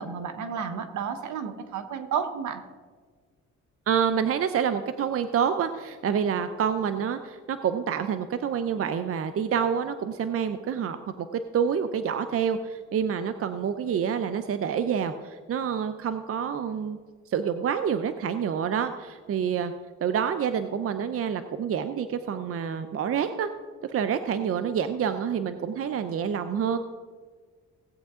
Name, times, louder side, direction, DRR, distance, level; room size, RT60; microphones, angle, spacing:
voice 1, 0.0-2.6, right 7 dB, 70° right, 8 dB, 1.2 m, -32 dB
voice 2, 3.9-11.0 11.3-17.0 17.3-19.7 20.0-23.5 23.9-26.8, right 7 dB, 50° right, 9 dB, 0.6 m, -27 dB
17.0 x 8.4 x 3.7 m, 1.5 s
cardioid pair, 90°, 30 cm